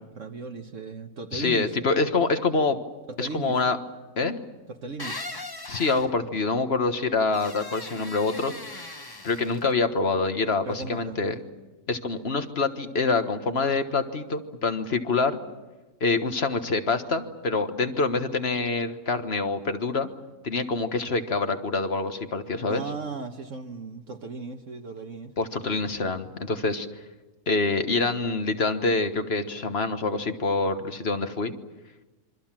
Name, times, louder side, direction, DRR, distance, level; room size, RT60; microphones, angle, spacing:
voice 1, 0.2-1.8 3.1-3.6 4.7-5.2 10.6-11.2 22.7-25.3, right 4 dB, 60° right, 4 dB, 1.6 m, -36 dB
voice 2, 1.3-2.8 3.2-3.8 4.2-4.4 5.7-8.9 9.2-11.3 11.9-15.4 16.0-20.1 20.4-22.8 25.4-26.9 27.5-31.5, left 3 dB, 45° left, 8 dB, 1.6 m, -26 dB
sound 1, 5.0-6.1 7.3-9.7, left 2 dB, 15° left, 1.1 m, -39 dB
26.5 x 24.0 x 7.5 m, 1.1 s
omnidirectional pair, 1.5 m